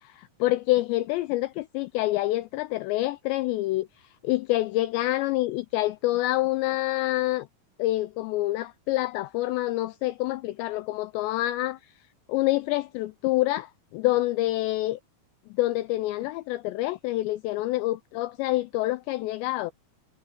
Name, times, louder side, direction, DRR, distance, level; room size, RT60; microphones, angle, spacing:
voice 1, 0.0-3.9 4.2-7.5 7.8-11.8 12.3-15.0 15.5-19.7, left 17 dB, 85° left, 2.5 m, -27 dB
omnidirectional pair, 5.6 m